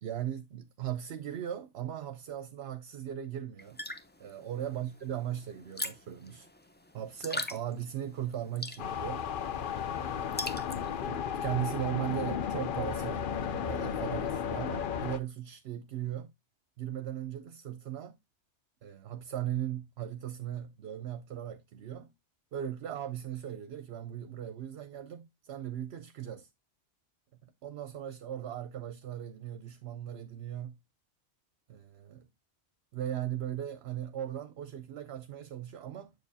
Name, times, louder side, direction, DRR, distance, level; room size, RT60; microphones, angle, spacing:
voice 1, 0.0-3.8 4.2-6.5 6.9-9.3 10.0-10.6 11.0-16.3 16.8-18.2 18.8-22.1 22.5-26.5 27.4-30.8 31.7-32.3 32.9-36.1, right 10 dB, 70° right, 0.9 m, -38 dB
sound 1, 3.6-11.1, left 1 dB, 10° left, 0.5 m, -42 dB
sound 2, 8.8-15.2, left 8 dB, 55° left, 0.7 m, -34 dB
8.0 x 6.8 x 2.7 m
omnidirectional pair, 1.2 m